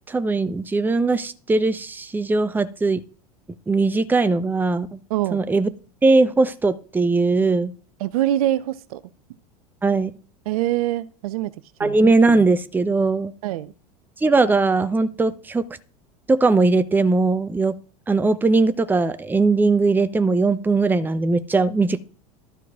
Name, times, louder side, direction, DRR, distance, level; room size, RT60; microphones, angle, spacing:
voice 1, 0.1-3.0 3.7-5.0 5.3-5.7 6.0-7.7 9.8-10.1 11.8-13.3 14.2-15.7 16.3-17.7 18.1-22.0, right 3 dB, 10° right, 0.6 m, -19 dB
voice 2, 8.0-9.0 10.5-11.5 11.8-11.9 13.4-13.7, right 13 dB, 65° right, 0.5 m, -24 dB
12.5 x 4.5 x 3.6 m
hypercardioid pair, 80°, 20 cm